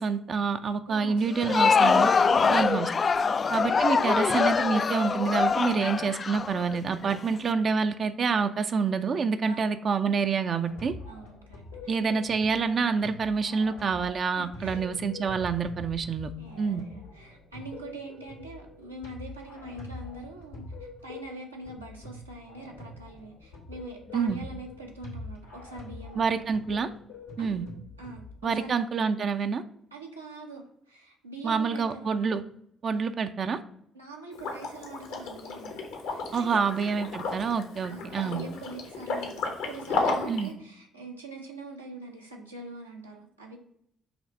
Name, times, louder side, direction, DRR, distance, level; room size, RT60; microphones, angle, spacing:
voice 1, 0.0-2.1 2.5-2.9 3.5-10.9 11.9-16.3 16.6-16.8 24.1-24.4 26.2-26.9 27.4-27.6 28.4-29.6 31.4-32.4 32.8-33.6 36.3-38.4 40.3-40.5, right 5 dB, 45° right, 8 dB, 0.5 m, -27 dB
voice 2, 0.9-1.2 2.2-3.3 9.5-9.9 11.1-12.0 14.4-14.8 16.4-26.5 27.4-27.7 28.0-28.8 29.9-32.1 33.9-36.9 37.9-43.6, right 2 dB, 90° right, -2 dB, 0.9 m, -44 dB
Crowd, 1.3-7.2, left 5 dB, 40° left, 0.3 m, -24 dB
sound 1, 10.6-28.6, left 2 dB, 85° left, 1.9 m, -45 dB
Liquid, 34.3-40.5, left 3 dB, 70° left, 1.2 m, -33 dB
6.0 x 3.2 x 5.2 m, 0.72 s
figure-of-eight pair, 45°, 0 cm